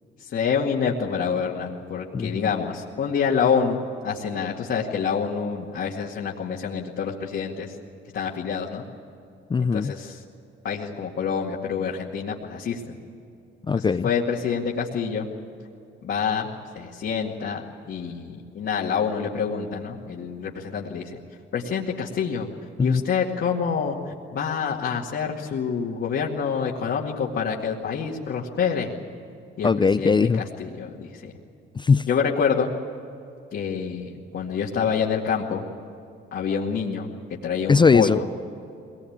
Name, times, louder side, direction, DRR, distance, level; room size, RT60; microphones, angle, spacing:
voice 1, 0.2-7.8 8.1-8.8 9.6-10.2 10.6-12.9 13.7-15.3 16.0-17.6 17.9-21.2 21.5-22.5 22.8-28.9 29.6-31.3 32.1-32.7 33.5-35.6 36.3-38.2, left 6 dB, 65° left, -3 dB, 2.2 m, -27 dB
voice 2, 2.1-2.5 9.5-9.9 13.6-14.1 22.8-23.0 29.6-30.4 31.7-32.1 37.7-38.4, left 5 dB, 25° left, 13 dB, 0.5 m, -20 dB
22.5 x 19.5 x 8.8 m, 2.7 s
cardioid pair, 90°, 20 cm